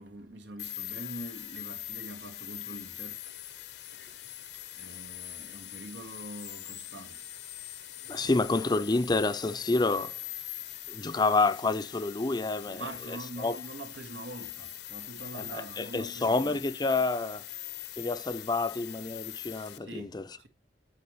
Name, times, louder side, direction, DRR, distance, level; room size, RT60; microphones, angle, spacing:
voice 1, 0.0-3.2 3.9-4.0 4.8-7.3 8.2-8.3 12.6-16.6 19.8-20.1 20.4-20.5, right 1 dB, 90° right, 1.7 m, -44 dB
sound 1, 0.6-19.8, left 14 dB, 65° left, 0.8 m, -42 dB
voice 2, 8.1-10.1 10.9-12.8 13.4-13.5 15.3-15.4 15.8-17.4 18.0-20.2, left 3 dB, 25° left, 0.5 m, -28 dB
8.4 x 7.8 x 3.1 m
head